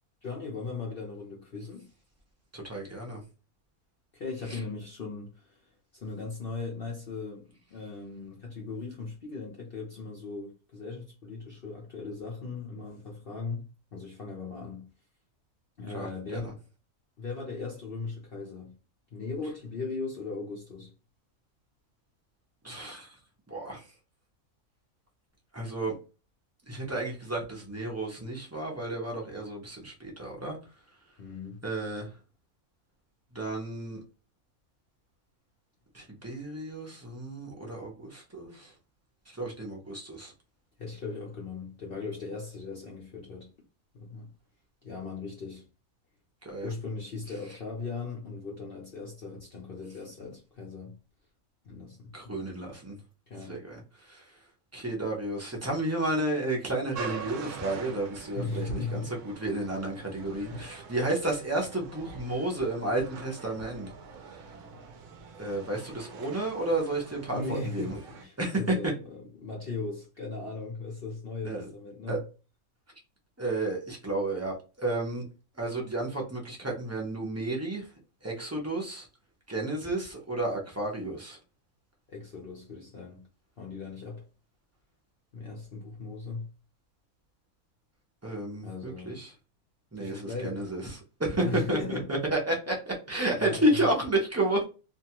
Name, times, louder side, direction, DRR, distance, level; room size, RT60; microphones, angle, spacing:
voice 1, 0.2-1.9 4.1-5.7 5.9-14.9 15.8-16.6 17.2-18.8 19.1-20.9 31.2-31.6 40.8-43.5 43.9-44.3 44.8-45.7 46.6-51.0 51.6-52.6 53.3-53.6 58.3-59.1 60.5-60.7 67.3-72.2 82.1-83.3 83.6-84.3 85.3-86.5 88.6-89.2 89.9-90.7 91.4-92.1 93.4-93.9, left 4 dB, 55° left, 0.6 m, -38 dB
voice 2, 2.5-3.2 4.5-4.6 15.9-16.4 22.6-23.1 23.5-23.8 25.5-26.0 26.7-30.6 31.6-32.1 33.3-34.0 35.9-38.7 39.3-40.3 46.4-46.7 52.1-53.0 53.5-54.2 54.7-63.9 64.3-64.4 65.4-68.0 68.4-68.7 71.4-71.6 72.1-72.2 73.4-75.2 75.6-77.9 78.2-79.1 79.5-81.4 88.2-89.3 89.9-94.6, right 2 dB, 25° right, 0.3 m, -31 dB
sound 1, 56.9-68.2, right 5 dB, 70° right, 0.8 m, -44 dB
2.7 x 2.3 x 2.8 m
omnidirectional pair, 1.6 m